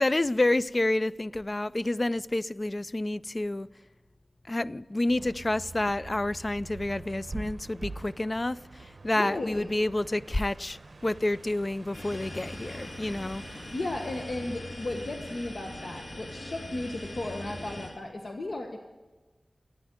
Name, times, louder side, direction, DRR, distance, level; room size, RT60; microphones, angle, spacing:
voice 1, 0.0-3.7 4.5-13.4, left 2 dB, 35° left, 0.4 m, -29 dB
sound 1, 5.1-17.6, right 3 dB, 65° right, 0.9 m, -46 dB
voice 2, 9.2-9.7 13.7-18.8, left 2 dB, 70° left, 1.3 m, -35 dB
sound 2, 11.9-17.9, left 1 dB, 85° left, 3.9 m, -41 dB
14.5 x 9.7 x 9.3 m
wide cardioid pair, 70°, 0 cm